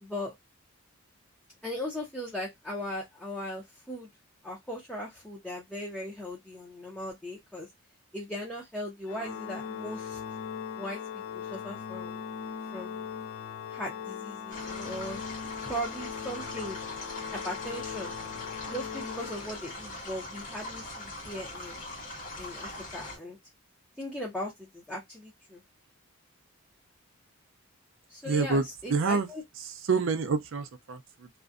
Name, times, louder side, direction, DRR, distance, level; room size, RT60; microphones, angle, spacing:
voice 1, 0.0-0.3 1.6-4.1 4.4-7.7 8.1-10.2 10.8-11.0 11.3-12.2 12.7-13.1 13.7-15.2 15.7-16.8 17.4-18.1 18.7-21.8 22.4-23.4 24.0-25.6 28.1-29.4, equal, 5° left, 0.5 m, -38 dB
Organ, 9.1-20.0, left 7 dB, 70° left, 0.3 m, -39 dB
sound 1, 14.5-23.2, left 2 dB, 35° left, 1.0 m, -41 dB
voice 2, 28.2-29.3 29.5-31.3, right 4 dB, 60° right, 0.4 m, -28 dB
2.5 x 2.1 x 2.3 m
head